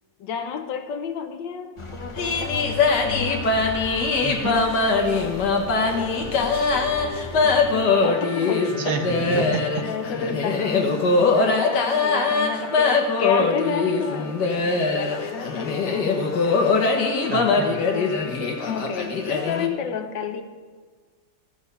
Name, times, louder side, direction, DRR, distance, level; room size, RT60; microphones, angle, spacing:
voice 1, 0.2-4.1 4.6-9.0 9.7-16.9 17.4-20.4, left 6 dB, 85° left, 7 dB, 1.6 m, -32 dB
Vehicle, 1.8-8.1, left 2 dB, 25° left, 0.6 m, -37 dB
sound 1, 2.2-19.7, left 4 dB, 70° left, 1.8 m, -22 dB
voice 2, 4.2-4.7 8.8-9.9 17.3-17.8, right 5 dB, 65° right, 5 dB, 1.5 m, -29 dB
15.0 x 7.0 x 5.4 m, 1.5 s
omnidirectional pair, 1.9 m